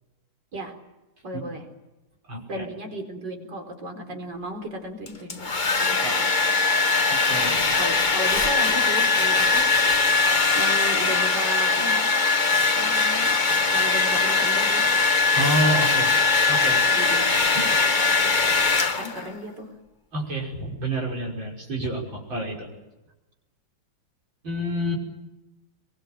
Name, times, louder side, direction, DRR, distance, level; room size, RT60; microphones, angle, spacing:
voice 1, 1.2-1.6 2.5-5.5 5.8-6.3 7.7-9.7 10.5-12.1 12.7-13.3 13.7-14.9 16.9-17.3 18.9-19.7, right 1 dB, 65° right, 5 dB, 4.9 m, -35 dB
voice 2, 2.3-2.6 6.0-6.2 7.1-7.8 15.3-16.1 16.5-16.8 17.5-18.1 20.1-22.7 24.4-25.0, right 1 dB, 80° right, -2 dB, 6.6 m, -28 dB
Domestic sounds home sounds, 5.1-19.3, left 4 dB, 25° left, 1.4 m, -21 dB
23.5 x 22.5 x 9.2 m, 1.0 s
omnidirectional pair, 2.1 m